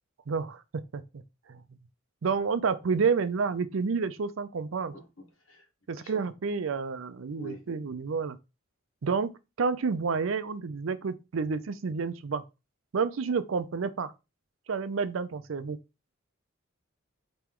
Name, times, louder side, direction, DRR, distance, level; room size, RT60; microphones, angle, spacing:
voice 1, 0.3-1.0 1.5-1.6 2.2-4.9 5.9-8.4 9.0-9.3 9.6-12.4 12.9-14.1 14.7-15.8, right 5 dB, 75° right, 0.5 m, -29 dB
voice 2, 4.9-5.6 5.9-6.1 7.4-7.7, right 1 dB, 85° left, 1.3 m, -47 dB
4.4 x 3.0 x 3.7 m
head